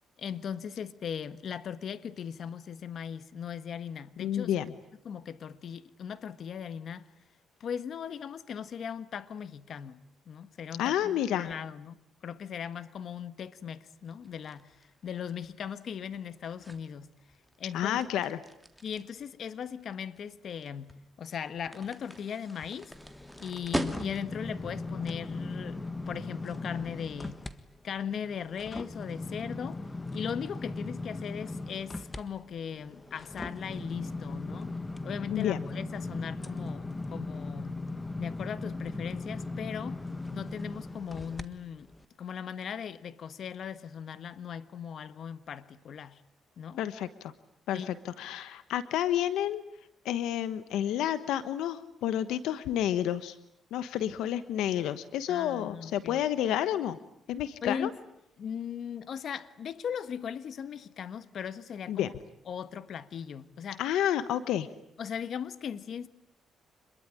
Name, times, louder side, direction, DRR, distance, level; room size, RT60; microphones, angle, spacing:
voice 1, 0.2-4.5 5.0-7.1 7.6-12.0 12.2-17.1 17.6-18.0 18.8-20.9 21.2-22.9 23.4-25.8 26.1-27.4 27.8-29.8 30.1-34.7 35.0-37.7 38.2-40.0 40.3-41.9 42.2-46.2 46.6-46.8 47.7-47.9 55.3-56.2 57.6-57.9 58.4-62.1 62.5-63.8 65.0-66.1, left 7 dB, 60° left, 1.4 m, -38 dB
voice 2, 4.2-4.7 10.8-11.5 17.7-18.4 35.3-35.6 46.8-47.3 47.7-49.6 50.0-53.3 53.7-57.0 57.3-57.9 61.9-62.1 63.8-64.7, left 11 dB, 85° left, 1.2 m, -30 dB
sound 1, 14.1-24.5, equal, ahead, 2.7 m, -42 dB
sound 2, 22.9-27.5 27.9-41.4 41.9-42.1, left 2 dB, 15° left, 1.7 m, -38 dB
26.5 x 22.0 x 10.0 m
cardioid pair, 90°, 0 cm